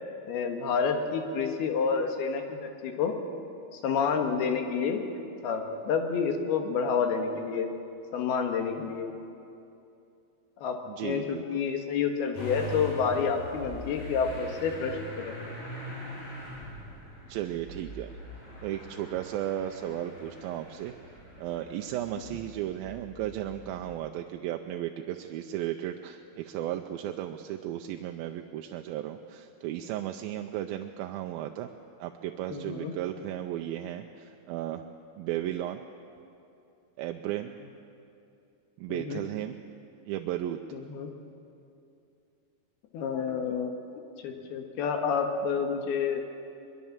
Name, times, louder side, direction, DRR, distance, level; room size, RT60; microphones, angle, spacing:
voice 1, 0.3-3.2 3.7-5.0 5.4-7.7 8.1-9.1 10.6-15.3 32.5-32.9 38.9-39.2 40.7-41.1 42.9-43.7 44.2-46.2, left 6 dB, 80° left, 4 dB, 3.5 m, -29 dB
voice 2, 10.9-11.6 17.3-18.1 18.6-20.9 21.4-31.7 32.0-34.8 35.2-35.9 37.0-37.6 38.8-39.6 40.1-40.6, right 12 dB, 80° right, 5 dB, 2.3 m, -35 dB
Motor vehicle (road) / Engine starting, 12.3-24.0, equal, 60° left, 9.6 m, -43 dB
22.5 x 22.0 x 7.3 m, 2.7 s
omnidirectional pair, 4.4 m